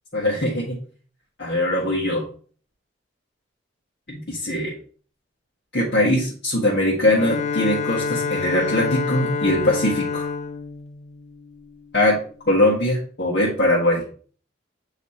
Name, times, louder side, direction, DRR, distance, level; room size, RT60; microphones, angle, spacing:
voice 1, 0.1-0.8 1.4-2.2 4.1-4.7 5.7-10.2 11.9-12.2 12.5-14.0, left 1 dB, 60° left, -6 dB, 1.7 m, -21 dB
Bowed string instrument, 7.1-11.9, left 5 dB, 35° left, 0.6 m, -28 dB
8.2 x 3.2 x 4.2 m, 0.43 s
head